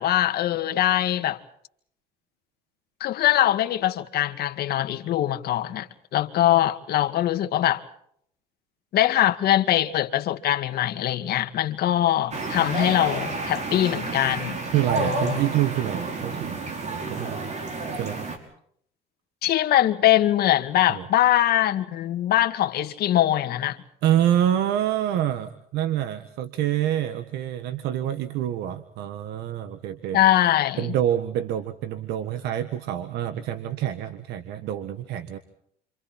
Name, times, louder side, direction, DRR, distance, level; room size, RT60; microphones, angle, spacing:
voice 1, 0.0-1.4 3.0-5.9 6.1-7.8 8.9-14.6 14.9-15.4 19.4-23.8 30.1-30.9, left 13 dB, 65° left, 7 dB, 2.0 m, -22 dB
sound 1, 12.3-18.4, right 3 dB, 45° right, 5.5 m, -30 dB
voice 2, 14.7-16.6 16.9-17.5 18.0-18.2 20.9-21.1 24.0-30.2 30.8-35.4, right 11 dB, 85° right, 10 dB, 1.6 m, -26 dB
29.5 x 26.5 x 4.4 m, 0.68 s
cardioid pair, 110°, 17 cm